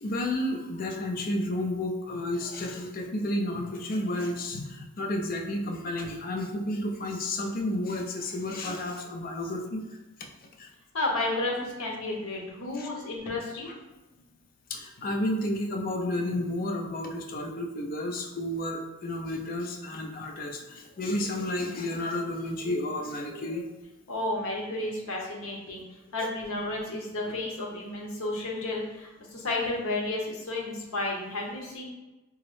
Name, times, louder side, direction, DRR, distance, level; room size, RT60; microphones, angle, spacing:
voice 1, 0.0-10.0 10.6-10.7 12.7-12.9 14.7-23.8 26.2-26.3, left 1 dB, 40° left, 2 dB, 0.4 m, -31 dB
voice 2, 10.9-13.7 24.1-31.8, left 2 dB, 70° left, -2 dB, 0.8 m, -32 dB
3.6 x 2.0 x 3.0 m, 1.1 s
head